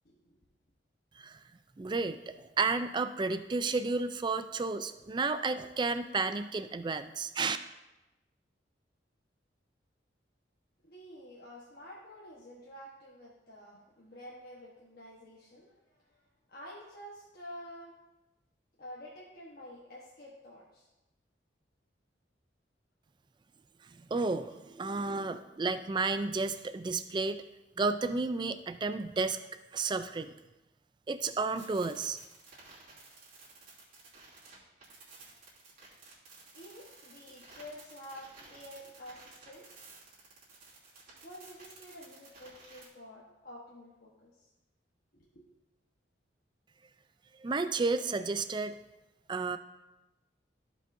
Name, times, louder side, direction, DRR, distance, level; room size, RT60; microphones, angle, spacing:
voice 1, 0.0-0.4 10.8-16.2 16.5-17.9 18.8-20.9 36.5-39.8 41.2-44.5 45.1-45.4, equal, 55° left, -5 dB, 1.2 m, -49 dB
voice 2, 1.8-7.6 24.0-27.4 27.8-29.4 29.7-30.3 31.1-32.2 47.4-48.8 49.3-49.6, right 3 dB, 25° right, 11 dB, 0.4 m, -32 dB
sound 1, 31.5-42.9, right 4 dB, 45° right, 2.9 m, -54 dB
15.0 x 5.3 x 2.6 m, 1.0 s
head